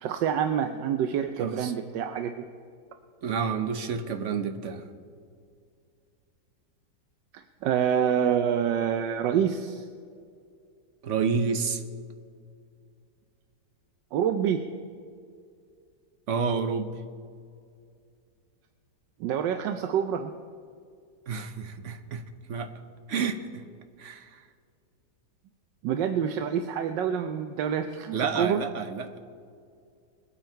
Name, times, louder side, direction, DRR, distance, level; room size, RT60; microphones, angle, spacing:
voice 1, 0.0-2.5 7.3-9.9 14.1-14.6 19.2-20.3 25.8-28.6, right 8 dB, 85° right, 7 dB, 1.3 m, -27 dB
voice 2, 1.4-1.7 3.2-4.9 11.0-11.8 16.3-16.9 21.3-22.2 22.5-22.7 23.1-23.6 24.0-24.4 28.1-29.2, right 5 dB, 55° right, 8 dB, 0.9 m, -29 dB
21.0 x 8.7 x 4.5 m, 2.3 s
omnidirectional pair, 1.9 m